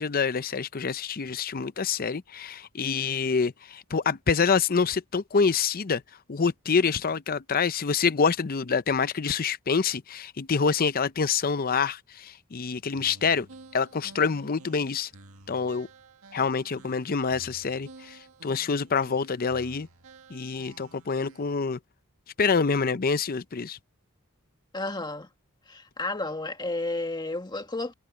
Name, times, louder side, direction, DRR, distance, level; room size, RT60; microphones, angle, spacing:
voice 1, 0.0-6.0 6.3-13.5 13.7-15.1 15.5-15.9 16.3-19.9 20.3-21.8 22.4-23.8, left 5 dB, 40° left, 0.6 m, -26 dB
sound 1, 12.9-21.7, right 3 dB, 70° right, 2.0 m, -51 dB
voice 2, 24.7-25.3 25.7-27.9, left 2 dB, 20° left, 1.8 m, -32 dB
head